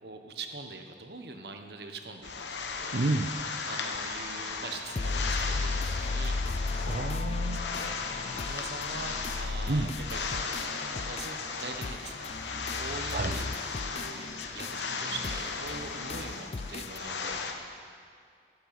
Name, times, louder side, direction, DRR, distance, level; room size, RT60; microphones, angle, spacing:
voice 1, 0.0-2.5 3.6-6.4 7.8-8.0 8.4-10.6 11.0-12.3 12.7-17.5, right 3 dB, 65° right, 5 dB, 1.2 m, -43 dB
sound 1, 2.2-17.5, left 4 dB, 80° left, 1.1 m, -36 dB
voice 2, 2.9-3.4 6.8-7.8 9.7-10.0 13.1-13.4, right 2 dB, 50° right, 5 dB, 0.5 m, -30 dB
sound 2, 4.1-17.0, left 3 dB, 35° left, 0.4 m, -36 dB
13.5 x 7.8 x 8.8 m, 2.2 s
head